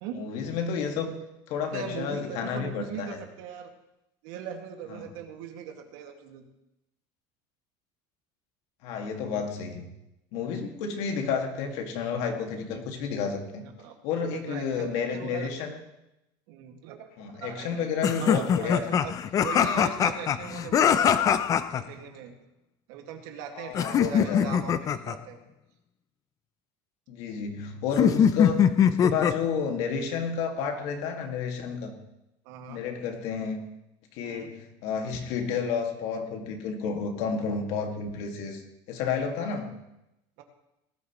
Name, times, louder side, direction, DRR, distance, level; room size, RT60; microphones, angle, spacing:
voice 1, 0.1-1.2 1.5-3.2 4.9-5.0 8.8-9.9 10.3-13.6 14.0-15.8 17.2-18.9 23.5-24.6 27.1-31.9 32.7-33.6 34.1-38.6 38.9-39.7, left 6 dB, 65° left, 4 dB, 2.0 m, -31 dB
voice 2, 1.7-3.7 4.2-6.4 10.3-10.6 13.6-15.7 16.5-17.8 18.2-19.1 19.4-21.4 21.7-22.3 22.9-25.4 32.5-32.8 34.2-34.5 40.4-40.5, right 8 dB, 75° right, 4 dB, 2.0 m, -40 dB
sound 1, 18.0-21.8 23.7-25.2 28.0-29.5, left 8 dB, 30° left, 0.5 m, -23 dB
19.0 x 12.5 x 3.1 m, 0.88 s
cardioid pair, 155°, 12 cm